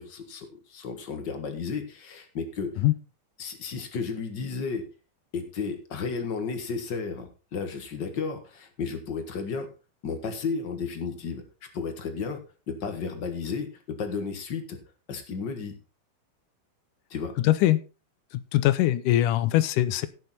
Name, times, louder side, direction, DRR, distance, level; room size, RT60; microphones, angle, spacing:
voice 1, 0.0-2.8 3.4-4.8 5.3-9.7 10.0-11.4 11.7-12.4 12.7-14.8 15.1-15.7 17.1-17.3, left 5 dB, 55° left, 7 dB, 1.2 m, -33 dB
voice 2, 17.4-17.8 18.5-20.1, left 14 dB, 80° left, 14 dB, 1.9 m, -22 dB
16.0 x 6.8 x 4.1 m, 0.33 s
omnidirectional pair, 4.3 m